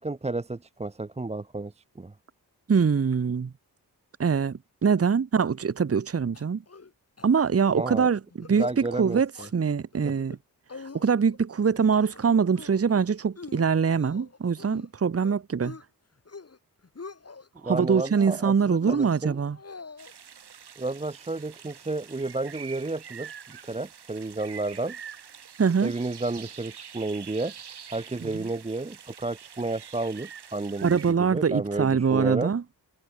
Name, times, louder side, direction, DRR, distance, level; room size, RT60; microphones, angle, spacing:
voice 1, 0.0-1.7 2.0-2.1 7.7-8.1 8.6-9.2 10.0-10.1 17.6-19.4 20.8-23.4 23.6-25.0 25.8-27.5 27.9-30.9 31.2-32.5, right 2 dB, 15° right, 0.8 m, -31 dB
voice 2, 2.7-3.5 4.2-6.6 7.2-10.4 10.9-15.8 17.6-19.6 25.6-25.9 28.2-28.5 30.8-32.6, right 6 dB, 35° right, 1.1 m, -24 dB
sound 1, 6.3-6.9 7.2-7.3 7.6-7.9 8.3-8.8 9.1-9.5 9.9-10.4 10.7-11.4 11.7-12.2 12.5-12.9 13.4-14.9 15.2-15.8 16.2-16.6 16.8-17.5 17.9-18.5 18.8-20.1, left 4 dB, 35° left, 2.6 m, -43 dB
sound 2, 20.0-31.1, right 8 dB, 70° right, 6.2 m, -45 dB
supercardioid pair, 40°, 41 cm